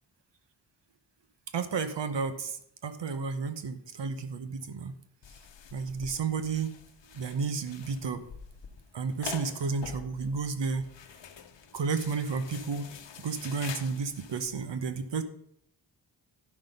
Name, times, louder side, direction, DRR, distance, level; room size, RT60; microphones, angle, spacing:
voice 1, 1.5-4.9 5.7-6.8 7.1-8.2 8.9-10.8 11.7-12.9 13.2-15.2, right 5 dB, 70° right, 10 dB, 1.1 m, -32 dB
sound 1, 5.2-14.5, left 7 dB, 70° left, 1.0 m, -46 dB
11.0 x 5.7 x 5.3 m, 0.71 s
cardioid pair, 55°, 45 cm